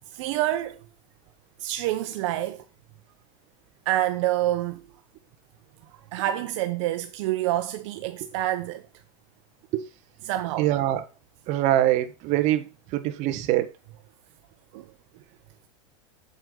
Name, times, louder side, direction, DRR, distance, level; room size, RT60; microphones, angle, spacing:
voice 1, 0.1-0.8 1.6-2.6 3.9-4.8 6.1-8.8 10.2-10.7 14.7-14.9, right 14 dB, 60° right, 0.9 m, -27 dB
voice 2, 10.6-11.0 11.5-12.6 12.9-13.7, right 14 dB, 40° right, 1.2 m, -23 dB
7.9 x 7.8 x 3.8 m
supercardioid pair, 150°, 18 cm